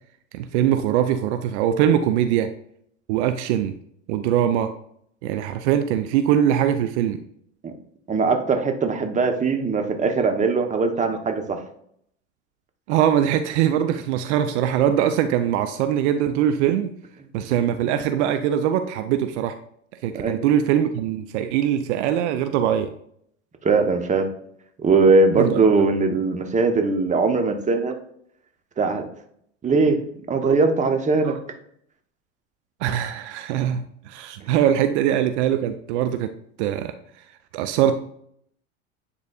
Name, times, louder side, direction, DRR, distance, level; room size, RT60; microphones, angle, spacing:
voice 1, 0.3-2.5 3.1-3.7 4.1-4.7 5.2-7.2 12.9-16.9 17.3-19.5 20.0-22.9 25.4-25.6 31.2-31.4 32.8-36.3 36.6-36.9 37.5-38.0, right 10 dB, 65° right, 9 dB, 0.6 m, -22 dB
voice 2, 8.1-11.6 20.1-20.4 23.6-24.3 24.8-28.0 28.8-29.0 29.6-30.0 30.3-31.4, right 4 dB, 20° right, 5 dB, 1.0 m, -20 dB
9.6 x 4.1 x 2.4 m, 0.68 s
hypercardioid pair, 85°, 38 cm